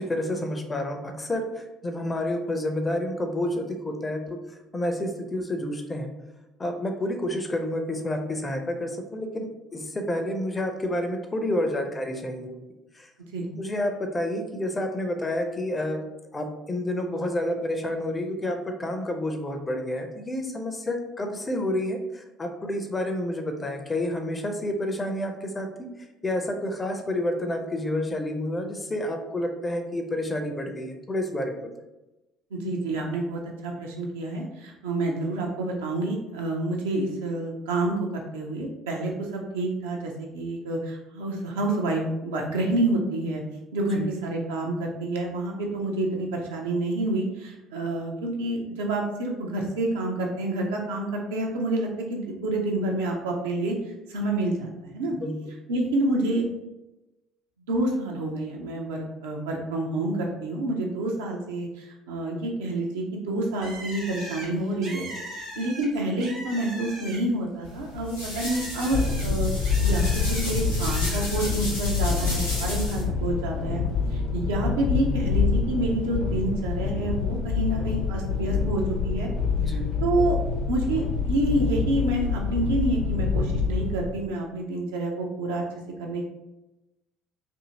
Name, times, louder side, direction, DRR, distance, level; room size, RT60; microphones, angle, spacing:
voice 1, 0.0-4.4 4.7-6.1 6.6-12.6 12.9-13.1 13.5-25.7 26.2-31.6 44.0-44.1 55.2-55.3 79.6-80.0, left 1 dB, 20° left, 5 dB, 0.5 m, -29 dB
voice 2, 32.5-43.4 43.7-53.7 54.1-55.2 55.7-56.4 57.7-73.8 74.1-79.3 79.7-79.8 80.0-80.4 80.7-85.6 86.0-86.2, right 2 dB, 70° right, 0 dB, 0.5 m, -28 dB
Bird, 63.6-67.4 67.8-70.4 70.9-71.5, right 1 dB, 55° right, 0.8 m, -40 dB
sound 1, 67.6-73.0, left 1 dB, 90° left, 0.8 m, -34 dB
sound 2, 68.9-84.0, left 5 dB, 60° left, 0.7 m, -26 dB
2.7 x 2.6 x 2.8 m, 0.98 s
figure-of-eight pair, 55°, 0 cm